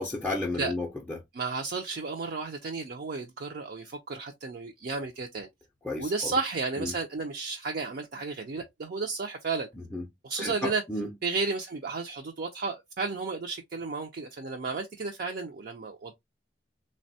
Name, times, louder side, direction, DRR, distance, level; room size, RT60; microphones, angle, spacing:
voice 1, 0.0-1.2 5.8-6.3 6.8-6.9 9.9-10.0 10.4-11.1, left 2 dB, 10° left, 0.4 m, -32 dB
voice 2, 1.3-5.5 6.0-9.7 10.2-10.8 11.2-16.2, right 4 dB, 55° right, 0.4 m, -33 dB
3.3 x 2.1 x 2.6 m
head